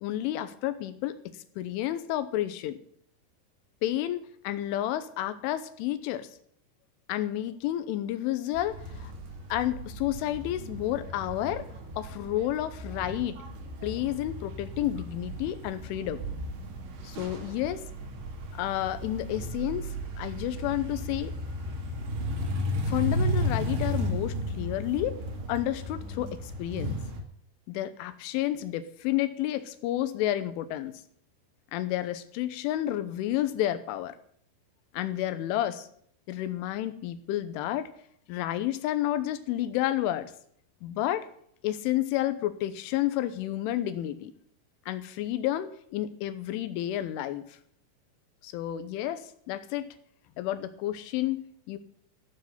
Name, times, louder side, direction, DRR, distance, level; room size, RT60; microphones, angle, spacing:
voice 1, 0.0-2.8 3.8-6.3 7.1-9.1 9.5-11.7 12.0-13.4 13.8-16.2 17.0-17.8 18.6-19.9 20.2-21.3 22.9-25.2 25.5-27.0 27.7-31.0 31.7-34.2 34.9-35.9 36.3-37.9 38.3-40.3 40.8-41.3 41.6-44.3 44.9-47.6 48.4-49.9 50.4-51.8, left 13 dB, 85° left, 12 dB, 3.3 m, -30 dB
sound 1, 8.5-27.2, equal, 70° right, 4.6 m, -34 dB
14.5 x 7.5 x 9.2 m, 0.64 s
omnidirectional pair, 5.5 m